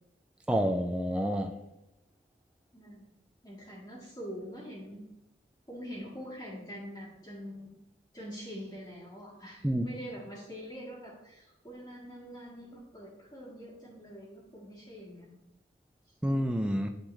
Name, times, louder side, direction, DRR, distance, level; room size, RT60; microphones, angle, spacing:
voice 1, 0.5-1.5 9.6-9.9 16.2-16.9, equal, 5° right, 4 dB, 0.4 m, -28 dB
voice 2, 2.7-3.1 3.4-5.1 5.7-7.7 8.1-15.4 16.1-16.2, equal, 15° left, -10 dB, 1.8 m, -44 dB
11.5 x 3.8 x 3.2 m, 0.90 s
head